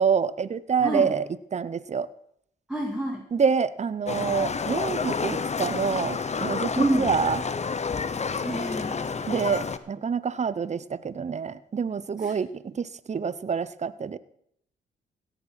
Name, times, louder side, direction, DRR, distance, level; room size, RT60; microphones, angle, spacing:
voice 1, 0.0-2.1 3.3-7.4 9.3-14.2, right 6 dB, 35° right, 17 dB, 0.7 m, -27 dB
voice 2, 2.7-3.2 6.8-7.1 8.4-9.0 12.2-12.3, right 1 dB, 5° right, 0 dB, 2.3 m, -27 dB
Livestock farm animals working animals, 4.1-9.8, left 5 dB, 35° left, 0.9 m, -29 dB
16.5 x 7.3 x 6.0 m, 0.71 s
supercardioid pair, 60°, 19 cm